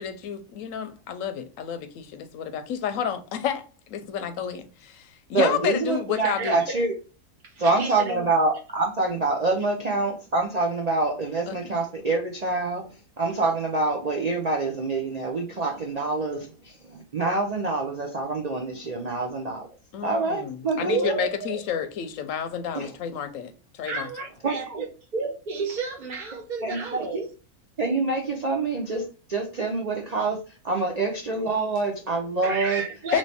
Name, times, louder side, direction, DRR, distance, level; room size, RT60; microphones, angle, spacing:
voice 1, 0.0-3.6 3.9-6.6 11.5-11.6 19.9-23.5 23.8-24.1 33.1-33.2, left 8 dB, 70° left, 0.9 m, -30 dB
voice 2, 5.3-6.9 7.6-12.8 13.2-16.5 16.8-19.7 20.0-21.2 22.7-22.9 24.4-24.8 26.6-27.2 27.8-30.4 30.6-32.8, right 3 dB, 85° right, 0.3 m, -26 dB
voice 3, 6.2-6.6 7.5-8.2 20.8-21.6 23.8-24.9 25.1-27.3 32.4-33.2, right 3 dB, 45° right, 0.6 m, -31 dB
3.1 x 3.0 x 4.1 m
omnidirectional pair, 1.6 m